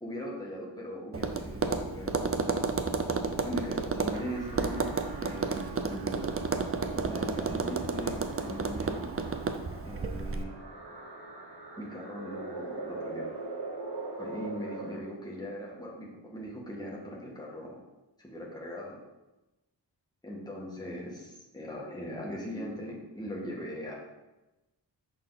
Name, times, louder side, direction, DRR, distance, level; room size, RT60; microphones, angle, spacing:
voice 1, 0.0-2.2 3.4-4.8 5.2-6.4 6.9-9.1 9.8-10.5 11.8-13.3 14.2-17.7 18.2-19.0 20.2-24.0, equal, 10° left, -4 dB, 1.6 m, -39 dB
Tap, 1.1-10.4, right 4 dB, 30° right, 0.5 m, -32 dB
sound 1, 4.1-15.0, right 3 dB, 60° right, 1.0 m, -42 dB
Wind instrument woodwind instrument, 4.4-9.5, right 8 dB, 75° right, 1.3 m, -46 dB
6.3 x 4.4 x 4.0 m, 1.0 s
wide cardioid pair, 55°, 45 cm